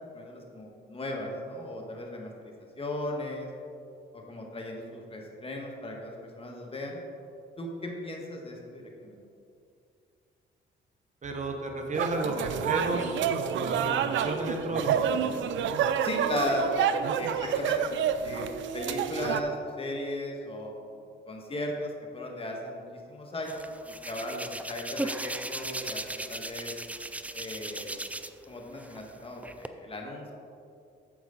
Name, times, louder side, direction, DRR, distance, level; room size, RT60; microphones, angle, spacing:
voice 1, 0.1-3.5 4.1-7.0 7.6-9.2 16.0-16.9 17.2-17.8 18.1-18.4 18.7-23.7 24.0-26.7 27.3-28.0 28.5-30.3, left 1 dB, 30° left, 0 dB, 1.7 m, -36 dB
voice 2, 11.2-15.3, right 2 dB, 35° right, 3 dB, 1.1 m, -33 dB
sound 1, 11.9-19.4, right 8 dB, 70° right, 0.5 m, -28 dB
Hands, 23.4-28.4 28.8-29.7, right 1 dB, 5° right, 0.4 m, -37 dB
9.5 x 7.1 x 4.0 m, 2.5 s
cardioid pair, 90°, 20 cm